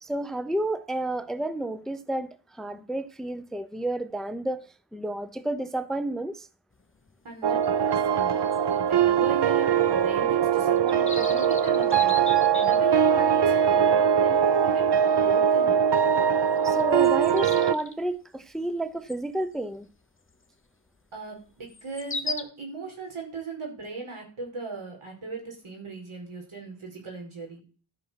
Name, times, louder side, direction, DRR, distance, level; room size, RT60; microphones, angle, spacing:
voice 1, 0.0-6.5 16.6-19.9, right 1 dB, ahead, 0.6 m, -31 dB
sound 1, 6.7-6.8 7.1-7.2 7.6-9.4 9.6-9.7 10.1-10.2 10.6-13.2 13.8-13.9 14.4-14.6 14.9-15.1 16.1-16.2 16.6-17.9 19.1-19.3 19.7-19.8 21.7-22.4, left 3 dB, 25° left, 1.0 m, -37 dB
voice 2, 7.2-8.5 8.7-14.8 15.2-15.8 21.1-27.6, right 4 dB, 85° right, 4.9 m, -38 dB
sound 2, 7.4-17.7, right 8 dB, 55° right, 0.7 m, -22 dB
13.0 x 6.1 x 5.7 m
wide cardioid pair, 100°, 48 cm